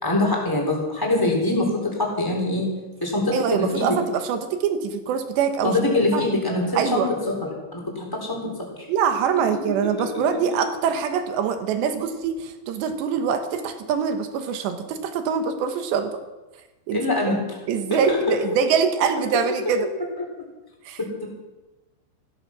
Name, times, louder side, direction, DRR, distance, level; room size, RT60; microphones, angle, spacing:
voice 1, 0.0-2.7 3.0-3.9 5.6-7.4 7.7-8.5 10.0-10.1 16.9-17.4 17.9-18.3 21.0-21.3, left 2 dB, 5° left, -1 dB, 3.4 m, -23 dB
voice 2, 3.3-5.8 6.1-6.2 6.8-7.1 8.9-16.2 16.9-17.0 17.7-19.9 20.9-21.0, right 7 dB, 75° right, 7 dB, 3.3 m, -24 dB
16.0 x 14.0 x 6.0 m, 1.1 s
omnidirectional pair, 5.4 m